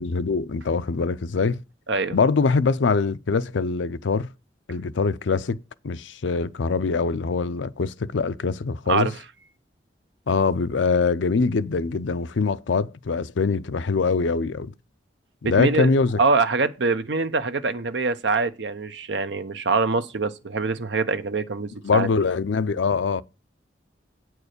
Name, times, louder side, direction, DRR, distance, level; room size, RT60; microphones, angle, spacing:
voice 1, 0.0-1.6 2.1-4.3 4.7-5.6 5.8-9.1 10.3-14.7 15.4-16.2 21.8-23.2, left 4 dB, 90° left, 0.5 m, -23 dB
voice 2, 15.4-15.9 16.2-22.1, right 4 dB, 75° right, 0.8 m, -24 dB
8.8 x 4.7 x 6.5 m
head